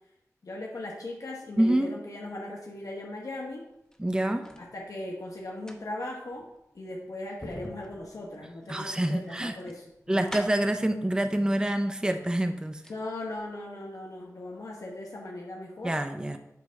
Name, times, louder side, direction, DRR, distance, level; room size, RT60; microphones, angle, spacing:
voice 1, 0.4-3.7 4.6-6.5 6.7-10.4 12.9-16.0, left 1 dB, 70° left, -1 dB, 1.0 m, -38 dB
voice 2, 1.6-1.9 4.0-4.4 8.7-9.6 10.1-12.8 15.8-16.4, right 1 dB, 15° right, 7 dB, 0.5 m, -26 dB
sound 1, 3.7-4.7 5.4-10.8 11.8-11.9 12.2-13.1 13.3-13.4, left 1 dB, 10° left, 0.8 m, -46 dB
8.2 x 3.3 x 5.1 m, 0.86 s
wide cardioid pair, 70°, 6 cm